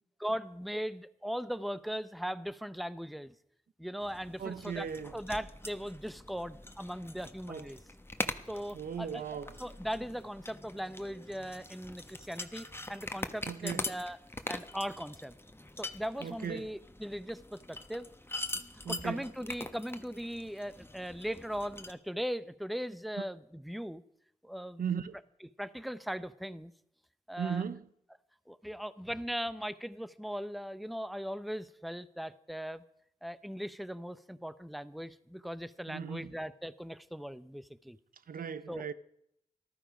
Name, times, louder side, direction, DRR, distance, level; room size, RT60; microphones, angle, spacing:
voice 1, 0.2-3.3 3.8-7.8 8.5-9.2 9.6-14.2 14.5-15.4 15.8-18.1 18.9-24.0 24.4-24.8 25.4-26.7 27.3-27.7 28.5-32.8 33.2-38.0 38.7-38.8, equal, ahead, 0.7 m, -39 dB
sound 1, 4.0-21.9, left 2 dB, 15° left, 1.2 m, -43 dB
voice 2, 4.4-5.1 7.5-7.6 8.7-9.5 13.5-13.8 16.2-16.7 18.8-19.2 24.8-25.1 27.4-27.8 35.9-36.3 38.3-38.9, right 7 dB, 85° right, 0.6 m, -37 dB
14.0 x 12.5 x 5.1 m
cardioid pair, 45°, 14 cm